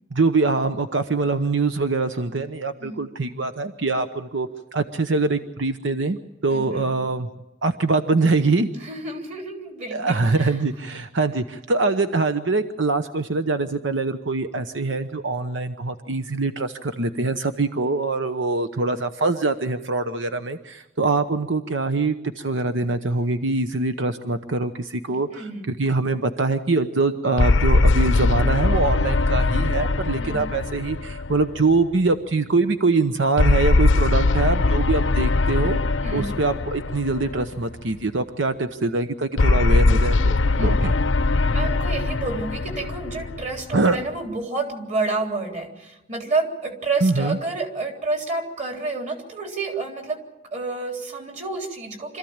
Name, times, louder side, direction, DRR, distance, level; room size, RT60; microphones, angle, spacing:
voice 1, 0.1-6.2 6.4-7.3 7.6-8.7 9.9-35.8 36.1-40.9 43.7-44.0 47.0-47.4, right 3 dB, 80° right, 9 dB, 0.9 m, -23 dB
voice 2, 6.5-6.9 8.8-10.5 25.3-25.7 30.2-30.5 36.0-36.3 40.5-40.9 41.5-50.2 50.5-52.2, right 3 dB, 40° right, 3 dB, 3.6 m, -29 dB
sound 1, 27.4-32.0 33.4-37.8 39.4-43.9, left 3 dB, 85° left, 0.7 m, -21 dB
26.0 x 14.5 x 8.8 m, 1.0 s
head